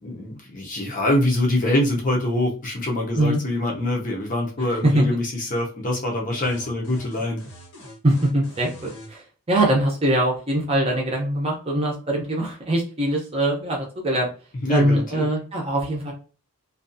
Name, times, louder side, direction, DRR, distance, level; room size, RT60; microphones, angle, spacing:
voice 1, 0.0-7.4 14.6-15.3, left 1 dB, 35° left, 0 dB, 0.6 m, -24 dB
sound 1, 6.3-9.1, equal, 90° left, 1.1 m, -43 dB
voice 2, 8.0-9.2 9.5-14.3 14.7-16.1, right 1 dB, 25° right, -1 dB, 0.6 m, -22 dB
2.5 x 2.3 x 2.6 m, 0.36 s
head